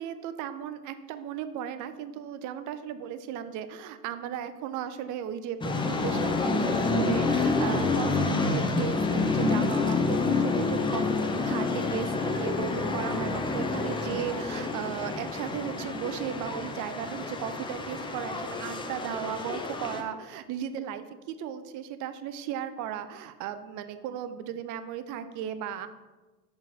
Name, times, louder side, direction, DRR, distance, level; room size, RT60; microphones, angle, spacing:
voice 1, 0.0-25.9, right 9 dB, 40° right, 11 dB, 0.6 m, -36 dB
sound 1, 5.6-20.0, left 3 dB, 10° left, 0.5 m, -28 dB
5.8 x 4.3 x 4.3 m, 1.2 s
hypercardioid pair, 80°, 47 cm